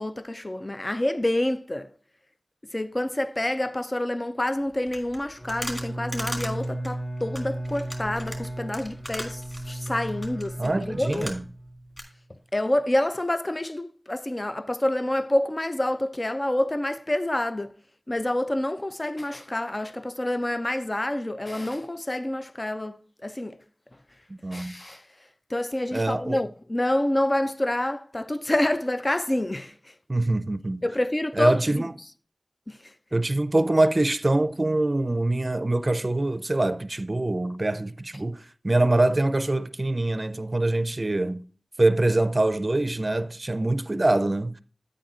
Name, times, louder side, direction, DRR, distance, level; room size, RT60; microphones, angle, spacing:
voice 1, 0.0-1.9 2.7-11.3 12.5-17.7 18.1-23.6 24.5-25.0 25.5-29.7 30.8-31.8 32.7-32.8, left 1 dB, 35° left, 0.4 m, -27 dB
sound 1, 4.9-11.7 12.0-12.1, equal, 20° left, 2.8 m, -39 dB
Bowed string instrument, 5.3-12.0, right 1 dB, 60° left, 3.5 m, -35 dB
voice 2, 10.6-11.4 24.3-24.7 25.9-26.4 30.1-30.8 31.3-31.9 33.1-41.4 41.8-44.5, right 2 dB, 45° right, 0.5 m, -24 dB
9.7 x 8.6 x 2.4 m
wide cardioid pair, 45°, 0 cm